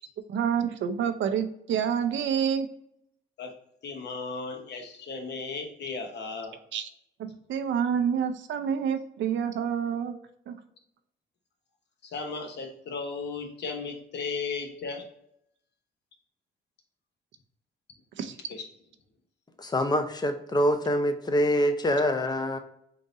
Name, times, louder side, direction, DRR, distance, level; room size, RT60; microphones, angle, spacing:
voice 1, 0.3-2.7 6.7-6.9 7.2-10.1 10.5-10.6 18.2-18.3, right 8 dB, 70° right, 7 dB, 0.6 m, -28 dB
voice 2, 3.8-6.6 12.0-15.0 18.5-18.6, left 4 dB, 60° left, 3 dB, 1.0 m, -35 dB
voice 3, 19.6-22.6, equal, 20° left, 7 dB, 0.6 m, -25 dB
3.8 x 2.6 x 3.9 m, 0.76 s
cardioid pair, 90°, 20 cm